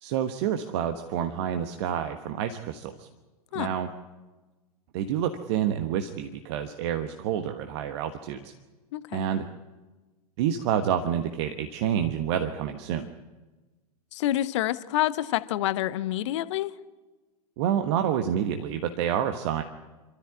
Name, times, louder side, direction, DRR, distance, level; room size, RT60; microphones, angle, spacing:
voice 1, 0.0-3.1 3.5-3.9 4.9-8.5 9.1-9.4 10.4-13.1 17.6-19.6, right 9 dB, 45° right, 7 dB, 1.3 m, -28 dB
voice 2, 8.9-9.2 14.1-16.7, left 14 dB, 50° left, 15 dB, 1.0 m, -27 dB
26.5 x 13.5 x 9.7 m, 1.2 s
figure-of-eight pair, 100°, 20 cm